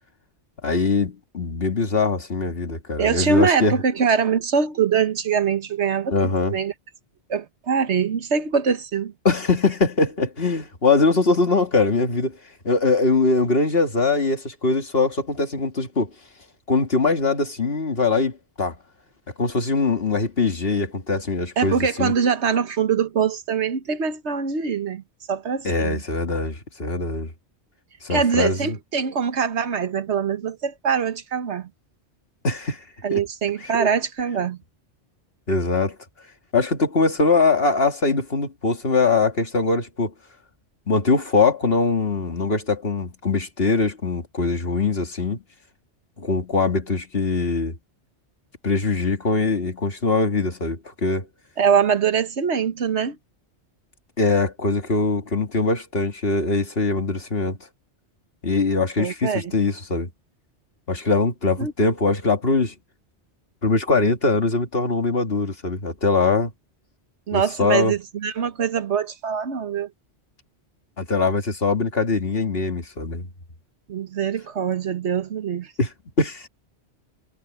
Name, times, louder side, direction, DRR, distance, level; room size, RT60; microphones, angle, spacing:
voice 1, 0.6-3.7 6.1-6.6 9.2-12.4 12.6-16.1 16.7-18.8 19.4-22.1 25.6-27.3 28.0-28.8 32.4-32.8 33.1-33.2 33.6-33.9 35.5-36.0 36.5-40.1 40.9-45.4 46.2-47.8 48.6-51.3 54.2-57.6 58.4-60.1 60.9-62.7 63.6-66.5 67.3-67.9 71.0-73.3 75.8-75.9 76.2-76.5, left 3 dB, 60° left, 2.5 m, -22 dB
voice 2, 3.0-6.7 7.3-9.1 21.6-25.0 25.3-26.0 28.1-31.7 33.0-34.6 51.6-53.2 59.0-59.5 61.6-61.7 67.3-69.9 73.9-75.7, right 6 dB, 80° right, 1.5 m, -23 dB
omnidirectional pair, 1.1 m